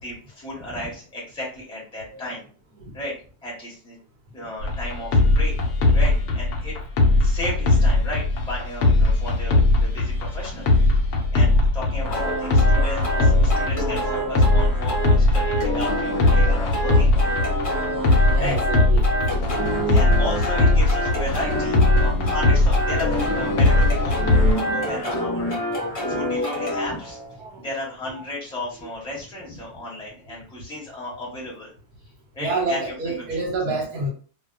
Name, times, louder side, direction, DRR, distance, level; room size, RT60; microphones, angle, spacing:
voice 1, 0.0-2.4 2.9-3.1 3.4-4.0 4.3-5.5 5.9-6.8 7.2-10.6 11.3-17.3 17.8-18.0 18.4-18.5 19.7-25.7 26.1-27.2 27.6-31.7 32.3-33.2, left 1 dB, 5° left, -5 dB, 0.8 m, -34 dB
sound 1, 4.6-24.5, left 2 dB, 75° left, 1.0 m, -20 dB
sound 2, 12.0-15.3 15.6-18.9 19.4-27.4, equal, 50° right, 0.9 m, -38 dB
sound 3, 12.1-26.9, right 1 dB, 40° left, 0.8 m, -27 dB
voice 2, 18.3-19.1 27.4-27.7 28.1-28.2 28.8-28.9 32.4-34.1, right 3 dB, 80° right, 0 dB, 1.3 m, -28 dB
2.5 x 2.2 x 2.3 m, 0.41 s
omnidirectional pair, 1.7 m